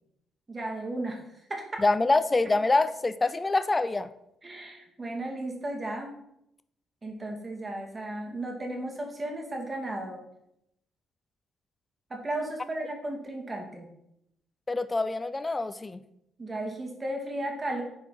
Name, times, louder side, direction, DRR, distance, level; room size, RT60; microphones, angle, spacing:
voice 1, 0.5-1.2 1.5-1.8 4.4-6.1 7.0-10.2 12.1-13.9 16.4-17.8, right 1 dB, 25° right, 1 dB, 2.0 m, -34 dB
voice 2, 1.8-4.1 14.7-16.0, left 2 dB, 20° left, 12 dB, 0.4 m, -25 dB
10.0 x 4.6 x 3.9 m, 0.79 s
cardioid pair, 90°, 0 cm